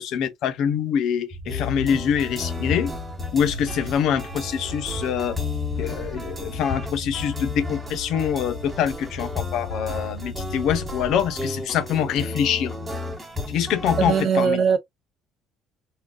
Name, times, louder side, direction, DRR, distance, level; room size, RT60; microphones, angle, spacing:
voice 1, 0.0-2.9 3.3-5.4 5.8-12.8 13.5-14.6, left 8 dB, 65° left, 0.7 m, -25 dB
sound 1, 1.3-11.3, left 1 dB, 10° left, 0.7 m, -37 dB
sound 2, 1.5-14.2, left 3 dB, 10° right, 1.1 m, -33 dB
voice 2, 14.1-14.8, right 6 dB, 40° right, 0.7 m, -20 dB
3.7 x 2.3 x 2.3 m
cardioid pair, 145°, 0 cm